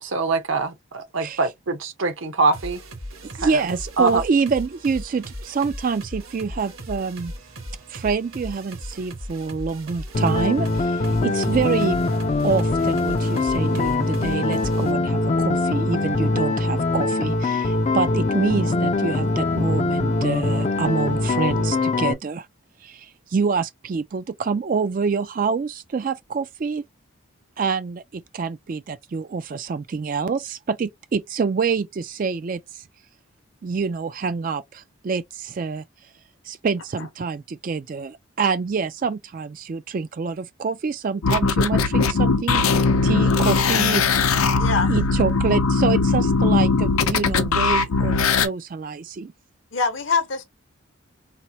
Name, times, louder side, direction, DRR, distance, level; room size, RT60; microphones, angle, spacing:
voice 1, 0.0-2.8 3.4-3.5 4.0-4.2, right 4 dB, 70° right, 0.8 m, -23 dB
sound 1, 2.5-14.9, equal, 85° right, 1.8 m, -37 dB
voice 2, 3.2-7.3 7.9-12.0 12.4-22.5 22.8-26.9 27.6-32.8 33.6-35.8 36.4-44.0 44.3-49.3, right 5 dB, 40° right, 0.3 m, -26 dB
sound 2, 10.1-22.1, left 3 dB, 30° left, 0.4 m, -22 dB
sound 3, 41.2-48.5, left 4 dB, 90° left, 0.6 m, -20 dB
voice 3, 44.6-44.9 49.7-50.4, left 5 dB, 65° left, 0.9 m, -24 dB
4.2 x 2.1 x 2.7 m
head